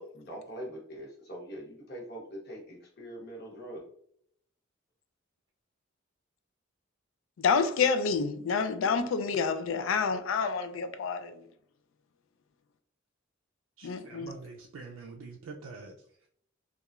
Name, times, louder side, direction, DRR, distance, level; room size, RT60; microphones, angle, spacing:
voice 1, 0.0-3.8, equal, 55° left, 0.9 m, -43 dB
voice 2, 7.4-11.3 13.8-14.3, left 5 dB, 75° left, 0.3 m, -28 dB
voice 3, 13.8-16.0, right 4 dB, 85° right, 0.4 m, -45 dB
2.9 x 2.3 x 2.3 m
head